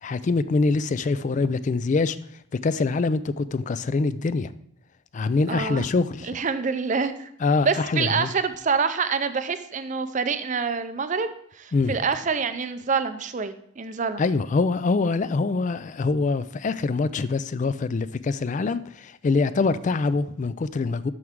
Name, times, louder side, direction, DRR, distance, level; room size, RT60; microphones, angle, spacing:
voice 1, 0.0-2.2 2.6-4.5 5.1-6.3 7.4-8.3 11.7-12.0 14.2-21.1, left 3 dB, 35° left, 0.3 m, -24 dB
voice 2, 5.5-5.8 6.3-7.3 7.6-14.2, right 5 dB, 35° right, 0.5 m, -26 dB
12.5 x 4.6 x 3.6 m
head